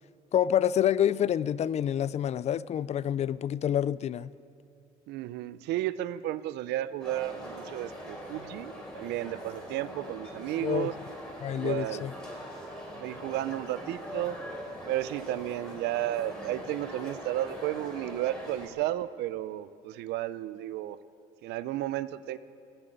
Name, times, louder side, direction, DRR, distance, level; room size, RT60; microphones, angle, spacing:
voice 1, 0.3-4.3 10.6-10.9 11.4-12.1, left 10 dB, 40° left, 19 dB, 0.4 m, -27 dB
voice 2, 5.1-11.0 11.5-12.1 12.9-14.4 14.9-21.0 21.4-22.4, right 14 dB, 80° right, 16 dB, 0.6 m, -33 dB
sound 1, 7.0-18.7, equal, 5° left, 3.7 m, -42 dB
16.0 x 10.0 x 8.9 m, 2.5 s
cardioid pair, 110°, 17 cm